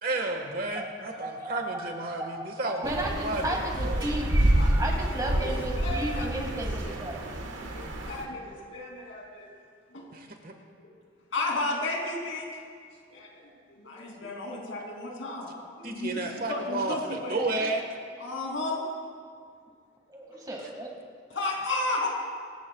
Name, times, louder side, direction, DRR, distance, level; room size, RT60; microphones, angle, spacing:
voice 1, 0.0-4.0 10.1-10.5 15.8-17.8, right 2 dB, 50° right, 3 dB, 1.5 m, -32 dB
voice 2, 0.8-1.9 2.2-7.2 20.1-20.9, right 1 dB, 20° right, 0 dB, 2.0 m, -34 dB
sound 1, 2.8-8.2, right 1 dB, 85° right, 1.4 m, -28 dB
voice 3, 4.5-5.0 5.2-6.9 7.6-9.5 9.9-10.0 10.8-10.9 11.3-12.4 13.1-17.7 18.2-18.8 21.3-22.1, left 2 dB, 80° left, -1 dB, 3.0 m, -34 dB
25.0 x 13.5 x 2.4 m, 2.1 s
head